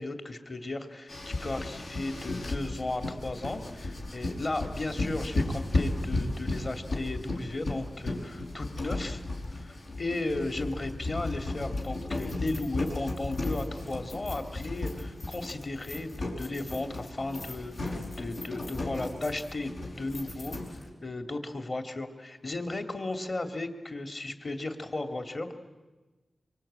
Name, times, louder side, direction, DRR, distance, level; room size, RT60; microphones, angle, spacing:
voice 1, 0.0-9.2 9.5-25.5, left 2 dB, 45° left, 7 dB, 2.4 m, -35 dB
sound 1, 1.1-20.9, left 2 dB, 85° left, 5.2 m, -35 dB
25.0 x 24.0 x 8.8 m, 1.2 s
cardioid pair, 65°, 0 cm